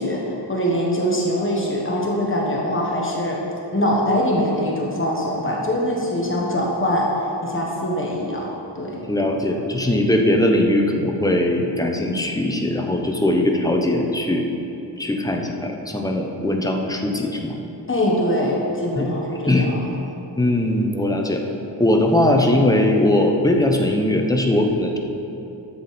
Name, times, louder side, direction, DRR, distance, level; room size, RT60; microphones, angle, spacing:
voice 1, 0.0-3.4 3.7-8.5 8.7-9.0 17.9-19.8, equal, 30° left, -3 dB, 1.3 m, -23 dB
voice 2, 9.1-14.5 15.0-17.5 19.0-19.1 19.5-19.7 20.4-21.4 21.8-25.0, left 1 dB, 10° left, 2 dB, 0.7 m, -20 dB
12.0 x 7.0 x 4.2 m, 2.9 s
wide cardioid pair, 155°, 44 cm